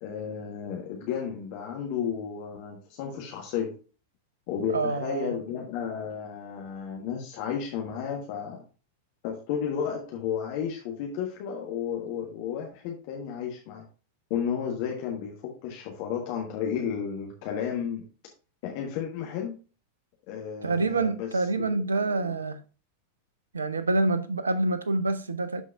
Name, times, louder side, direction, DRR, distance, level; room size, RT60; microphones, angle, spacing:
voice 1, 0.0-3.7 4.5-8.6 9.2-13.8 14.3-15.3 15.6-18.0 18.6-19.5 20.3-21.3 21.6-22.3, left 7 dB, 45° left, 1.4 m, -33 dB
voice 2, 4.7-5.3 20.6-22.6 23.5-25.6, right 2 dB, 75° right, 0.7 m, -27 dB
12.5 x 4.5 x 2.5 m
figure-of-eight pair, 90°, 0 cm